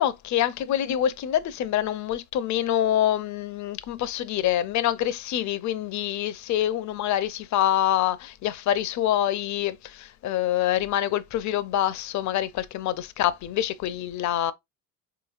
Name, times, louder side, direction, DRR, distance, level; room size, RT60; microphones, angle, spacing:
voice 1, 0.0-14.5, left 11 dB, 45° left, 0.5 m, -26 dB
3.8 x 3.1 x 2.4 m
supercardioid pair, 75°, 42 cm